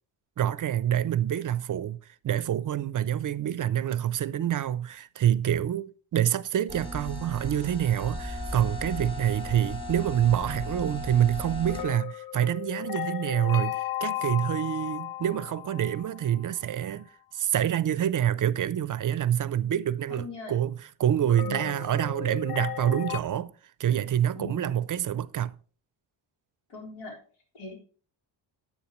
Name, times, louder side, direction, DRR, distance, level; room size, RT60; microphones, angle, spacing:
voice 1, 0.4-2.0 2.2-23.5 23.8-25.5, right 10 dB, 40° right, 0.5 m, -27 dB
sound 1, 6.7-11.8, left 1 dB, 10° left, 1.5 m, -36 dB
sound 2, 11.7-16.6 21.3-23.2, left 14 dB, 45° left, 0.5 m, -35 dB
voice 2, 20.1-20.5 21.4-21.9 24.4-24.8 26.7-27.2 27.5-27.7, left 3 dB, 80° left, 3.9 m, -40 dB
10.0 x 8.6 x 3.1 m
cardioid pair, 90°, 48 cm